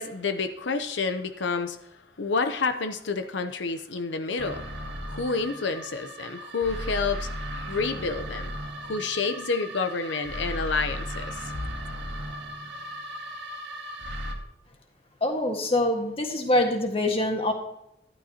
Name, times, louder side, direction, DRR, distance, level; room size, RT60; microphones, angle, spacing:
voice 1, 0.0-1.9 2.2-4.6 5.1-7.3 7.7-8.5 8.8-11.4, left 4 dB, 90° left, 8 dB, 0.7 m, -29 dB
sound 1, 4.4-14.3, equal, 80° right, 1.8 m, -36 dB
voice 2, 15.2-17.5, left 1 dB, 30° left, 2 dB, 1.6 m, -24 dB
12.5 x 11.0 x 2.9 m, 0.81 s
head